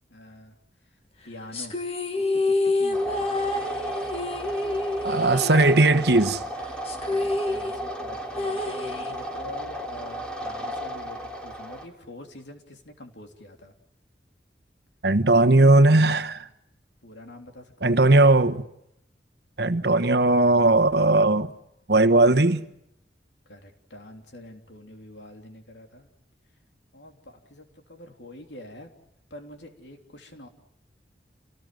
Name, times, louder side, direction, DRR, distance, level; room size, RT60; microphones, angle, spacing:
voice 1, 0.1-0.6 0.8-1.0 1.2-1.8 2.1-3.4 7.1-13.7 17.0-18.4 23.4-26.1 26.9-28.9 29.3-30.5, left 1 dB, 85° left, 3.3 m, -45 dB
sound 1, 1.5-6.2 6.4-6.5 6.8-9.5, left 2 dB, 35° left, 2.0 m, -28 dB
sound 2, 2.9-11.9, right 1 dB, 5° left, 2.9 m, -34 dB
voice 2, 5.0-6.4 15.0-16.5 17.8-18.6 19.6-21.5 21.9-22.6, right 2 dB, 70° right, 1.2 m, -18 dB
29.0 x 19.0 x 7.7 m
head